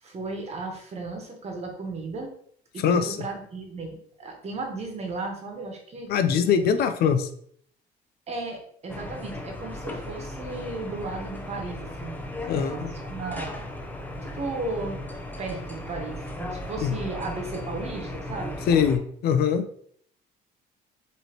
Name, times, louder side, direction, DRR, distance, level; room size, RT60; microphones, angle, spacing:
voice 1, 0.0-2.3 2.7-6.1 6.5-6.6 7.0-7.1 8.3-12.2 12.5-13.5 14.2-15.0 15.4-18.7, right 3 dB, 40° right, 2 dB, 1.3 m, -35 dB
voice 2, 2.8-3.2 6.1-7.3 12.5-12.9 16.8-16.9 18.7-19.6, left 7 dB, 65° left, 8 dB, 0.6 m, -22 dB
sound 1, 8.9-19.0, left 1 dB, 10° left, 0.7 m, -36 dB
5.3 x 3.2 x 3.0 m, 0.63 s
cardioid pair, 110°, 17 cm